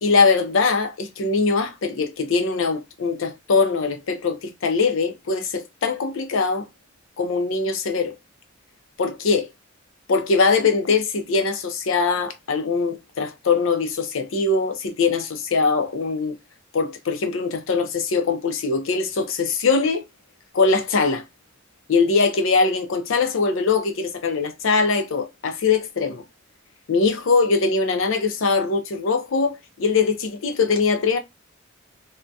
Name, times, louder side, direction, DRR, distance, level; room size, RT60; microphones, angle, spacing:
voice 1, 0.0-6.6 7.2-8.1 9.0-9.5 10.1-16.3 16.7-20.0 20.5-21.2 21.9-26.2 26.9-31.2, left 4 dB, 70° left, 0.5 m, -22 dB
2.2 x 2.1 x 2.6 m
head